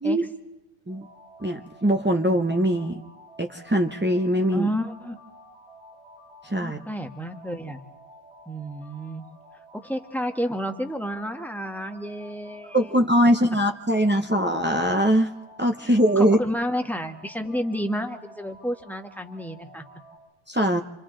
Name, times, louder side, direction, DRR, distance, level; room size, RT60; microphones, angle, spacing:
sound 1, 0.9-20.2, equal, 90° right, 7.9 m, -51 dB
voice 1, 1.4-3.0 3.4-4.7 6.4-6.8 12.7-15.3 15.6-16.4 20.5-20.8, equal, 15° right, 4 dB, 0.3 m, -21 dB
voice 2, 4.5-5.2 6.6-7.8 8.5-9.2 9.7-12.9 15.8-19.8, equal, ahead, 6 dB, 1.1 m, -31 dB
28.0 x 26.0 x 3.8 m, 0.99 s
omnidirectional pair, 1.6 m